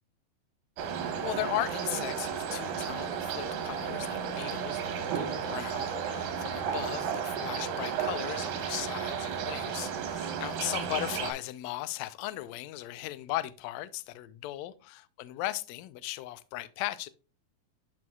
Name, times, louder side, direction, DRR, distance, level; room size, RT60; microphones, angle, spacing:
sound 1, 0.8-11.3, right 7 dB, 80° right, 2.7 m, -33 dB
voice 1, 1.2-17.1, left 16 dB, 80° left, 1.7 m, -37 dB
12.5 x 4.3 x 2.3 m
omnidirectional pair, 3.6 m